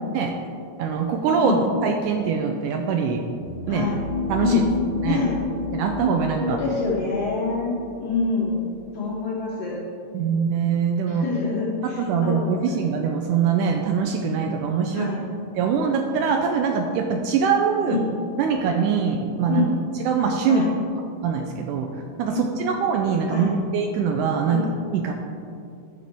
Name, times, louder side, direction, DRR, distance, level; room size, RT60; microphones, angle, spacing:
voice 1, 0.8-3.3 3.7-3.9 4.3-4.6 5.0-5.2 5.7-6.6 10.1-11.2 11.8-15.1 15.6-18.0 18.4-19.7 20.0-20.7 21.2-21.9 22.2-24.7 24.9-25.1, right 6 dB, 80° right, 4 dB, 1.9 m, -23 dB
sound 1, 3.2-9.2, left 4 dB, 60° right, 3.1 m, -32 dB
voice 2, 3.7-4.0 4.4-4.7 5.1-5.4 6.4-8.7 8.9-9.8 11.1-12.5 14.9-15.2 17.9-18.1 19.5-19.7 20.5-20.7 22.3-22.4 23.3-23.5 24.5-24.7, left 4 dB, 70° left, -4 dB, 1.6 m, -26 dB
13.0 x 6.3 x 3.5 m, 2.5 s
omnidirectional pair, 4.0 m